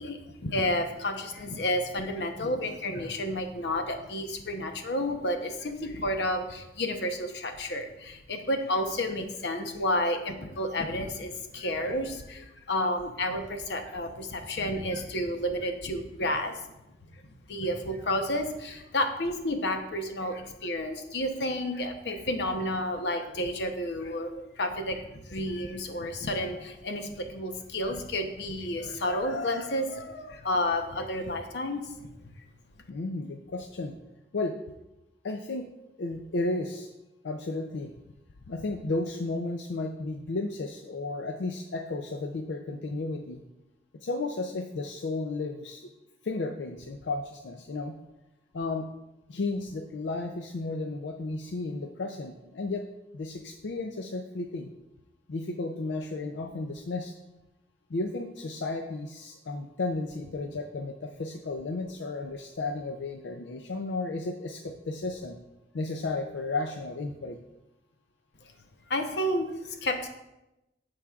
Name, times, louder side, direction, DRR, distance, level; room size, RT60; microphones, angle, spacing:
voice 1, 0.0-16.6 17.5-32.1 68.9-70.1, left 1 dB, 70° left, 5 dB, 0.8 m, -31 dB
voice 2, 32.9-34.0 34.3-34.6 35.2-35.7 36.0-36.9 37.2-37.9 38.5-43.4 44.0-45.9 46.2-48.0 48.5-48.9 49.3-52.8 53.1-54.7 55.3-57.1 57.9-65.4 65.7-67.4, left 2 dB, 90° left, 4 dB, 0.5 m, -33 dB
14.5 x 4.8 x 2.4 m, 0.95 s
head